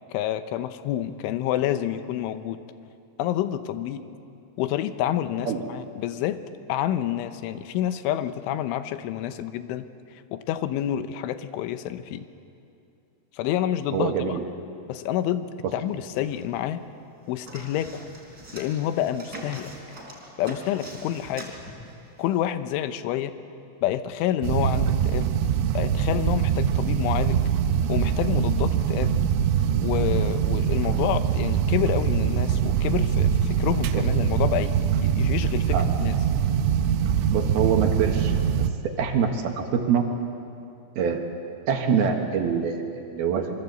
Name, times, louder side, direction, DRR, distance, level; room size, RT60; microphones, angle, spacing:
voice 1, 0.1-2.6 3.2-4.0 4.6-6.4 6.7-12.3 13.3-14.4 14.9-16.8 17.3-18.1 18.5-19.7 20.4-21.5 22.2-23.3 23.8-25.3 25.8-27.4 27.9-29.2 29.8-36.1, left 11 dB, 90° left, 11 dB, 3.4 m, -28 dB
voice 2, 13.9-14.4 33.9-34.0 35.7-35.9 37.3-38.3 38.8-40.1 41.0-41.2 41.7-43.5, right 7 dB, 65° right, 4 dB, 3.0 m, -24 dB
sound 1, 15.9-16.8 17.0-22.4, right 1 dB, 20° right, 3.8 m, -43 dB
sound 2, 24.4-38.7, right 8 dB, 80° right, 3.2 m, -23 dB
26.5 x 23.5 x 8.1 m, 2.6 s
omnidirectional pair, 5.4 m